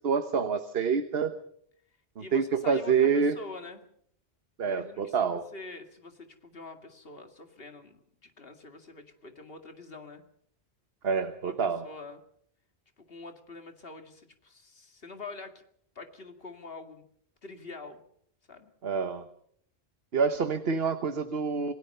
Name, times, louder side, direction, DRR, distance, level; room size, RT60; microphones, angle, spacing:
voice 1, 0.0-1.3 2.2-3.4 4.6-5.5 11.0-11.8 18.8-19.3 20.1-21.7, right 6 dB, 60° right, 9 dB, 1.3 m, -27 dB
voice 2, 2.2-3.8 4.6-10.2 11.4-12.2 13.0-15.6 16.0-17.1 17.4-18.0 18.5-18.7, left 3 dB, 55° left, 6 dB, 2.5 m, -45 dB
28.0 x 19.0 x 5.6 m, 0.66 s
omnidirectional pair, 1.2 m